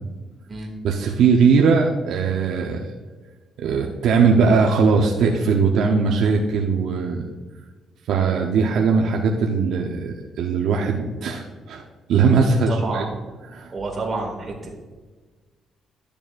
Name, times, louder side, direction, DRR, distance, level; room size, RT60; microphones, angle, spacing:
voice 1, 0.8-2.8 3.6-7.2 8.1-11.8 12.1-13.0 13.5-13.7, right 5 dB, 80° right, 1 dB, 0.7 m, -19 dB
voice 2, 12.7-13.1 13.7-14.7, right 3 dB, 35° right, 0 dB, 2.3 m, -29 dB
13.0 x 6.9 x 2.5 m, 1.4 s
cardioid pair, 90°, 0 cm